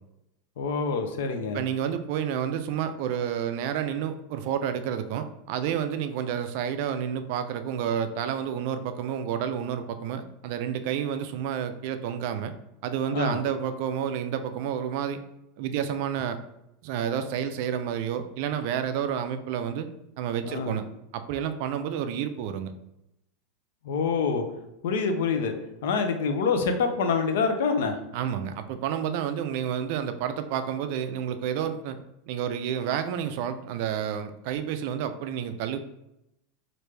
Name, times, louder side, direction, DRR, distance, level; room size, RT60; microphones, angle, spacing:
voice 1, 0.6-1.6 13.1-13.4 20.4-20.8 23.8-24.4 24.8-25.5 25.8-28.0, left 5 dB, 75° left, 6 dB, 0.5 m, -26 dB
voice 2, 1.5-12.5 12.8-15.2 15.6-16.4 16.8-19.9 20.2-20.8 21.1-22.7 28.1-32.0 32.3-35.8, right 9 dB, 50° right, 9 dB, 0.3 m, -30 dB
3.3 x 2.5 x 3.2 m, 0.84 s
supercardioid pair, 170°, 0 cm